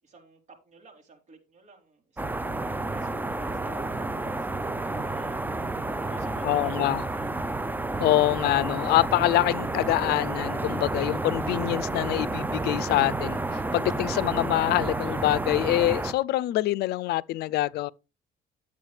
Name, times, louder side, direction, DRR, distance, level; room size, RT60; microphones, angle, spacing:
voice 1, 0.0-5.6 5.9-7.3, right 3 dB, 45° right, 3.8 m, -52 dB
sound 1, 2.2-16.1, right 2 dB, 10° right, 0.7 m, -30 dB
voice 2, 6.4-7.0 8.0-17.9, left 16 dB, 70° left, 0.5 m, -25 dB
11.0 x 8.1 x 3.2 m
cardioid pair, 110°, 17 cm